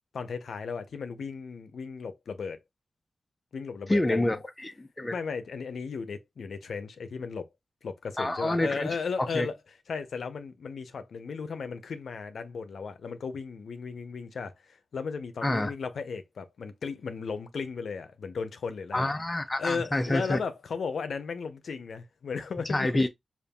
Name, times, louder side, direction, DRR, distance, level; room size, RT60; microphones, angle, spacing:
voice 1, 0.1-2.6 3.5-4.4 5.1-7.5 7.8-9.6 9.9-19.1 19.5-23.1, left 5 dB, 85° left, 0.6 m, -35 dB
voice 2, 3.9-4.4 4.6-5.1 8.2-8.9 9.2-9.5 15.4-15.7 18.9-20.4 22.7-23.1, left 1 dB, 15° left, 0.5 m, -27 dB
5.2 x 2.5 x 2.3 m
wide cardioid pair, 165°, 0 cm